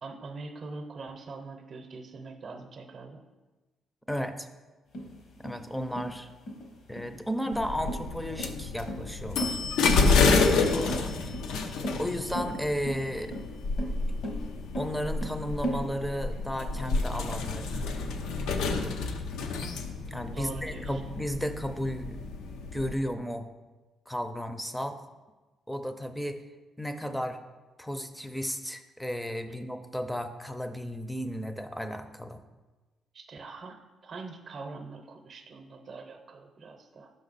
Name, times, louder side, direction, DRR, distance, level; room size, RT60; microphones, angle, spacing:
voice 1, 0.0-3.2 20.3-21.0 33.1-37.1, right 3 dB, 45° right, 6 dB, 0.7 m, -43 dB
voice 2, 4.1-4.5 5.4-6.3 6.9-9.6 10.3-11.1 12.0-13.3 14.8-17.8 20.1-22.2 22.7-23.5 24.1-25.0 25.7-26.4 26.8-27.4 27.8-32.4, equal, 5° left, 8 dB, 0.5 m, -34 dB
sound 1, 4.9-15.8, right 1 dB, 70° left, 1.1 m, -37 dB
sound 2, 7.5-22.9, left 4 dB, 90° left, 0.5 m, -29 dB
5.6 x 5.3 x 4.0 m, 1.2 s
cardioid pair, 90°, 0 cm